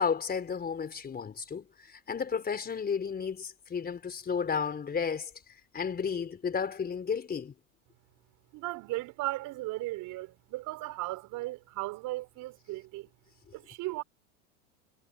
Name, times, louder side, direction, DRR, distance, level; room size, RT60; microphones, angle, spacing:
voice 1, 0.0-5.3 5.7-7.5, left 6 dB, 25° left, 4.4 m, -32 dB
voice 2, 8.5-13.1 13.5-14.0, right 18 dB, 50° right, 4.5 m, -36 dB
hypercardioid pair, 100°, 40 cm